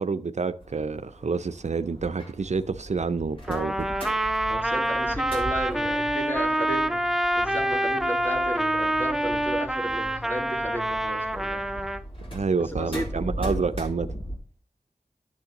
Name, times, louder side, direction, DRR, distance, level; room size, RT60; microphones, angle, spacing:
voice 1, 0.0-3.9 12.3-14.1, right 4 dB, 65° right, 0.5 m, -28 dB
sound 1, 0.6-14.4, equal, 45° left, 3.3 m, -39 dB
Trumpet, 3.5-12.0, right 1 dB, 5° right, 0.5 m, -26 dB
voice 2, 4.5-11.7 12.6-13.3, equal, 15° left, 2.1 m, -34 dB
10.5 x 7.1 x 2.9 m
wide cardioid pair, 45°, 13 cm